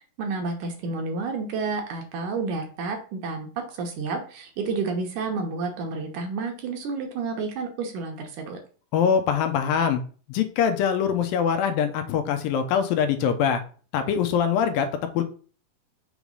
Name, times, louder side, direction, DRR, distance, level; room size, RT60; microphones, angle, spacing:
voice 1, 0.2-8.6, right 4 dB, 70° right, 3 dB, 2.2 m, -30 dB
voice 2, 8.9-10.0 10.3-13.6 13.9-14.9 15.1-15.2, left 7 dB, 85° left, 7 dB, 2.5 m, -23 dB
6.2 x 3.2 x 5.3 m, 0.39 s
omnidirectional pair, 4.1 m